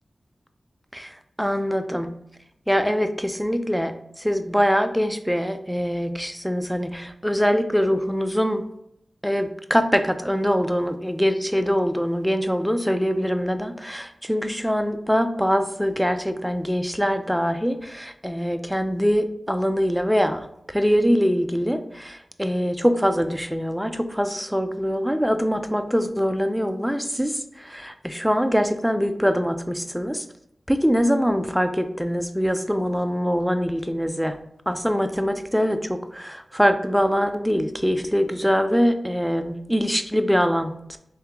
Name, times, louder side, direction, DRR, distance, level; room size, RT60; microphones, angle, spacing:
voice 1, 0.9-2.1 2.7-8.6 9.2-30.2 30.7-34.4 34.7-41.0, equal, ahead, 8 dB, 0.3 m, -23 dB
3.6 x 3.3 x 2.9 m, 0.78 s
wide cardioid pair, 75°, 0 cm